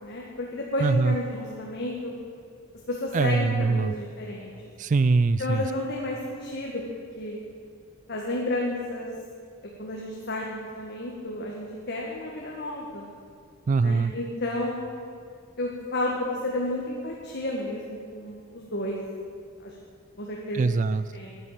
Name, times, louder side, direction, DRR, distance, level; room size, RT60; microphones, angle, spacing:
voice 1, 0.0-2.1 2.9-4.5 5.4-6.8 7.2-7.4 8.1-9.1 9.8-13.1 13.8-14.9 15.6-19.0 19.6-19.7 20.2-20.6 21.1-21.3, left 1 dB, 55° left, -2 dB, 1.8 m, -31 dB
voice 2, 0.8-1.2 3.1-3.9 4.8-5.6 13.7-14.1 20.5-21.1, right 4 dB, 40° right, 14 dB, 0.3 m, -22 dB
11.0 x 10.5 x 8.9 m, 2.3 s
head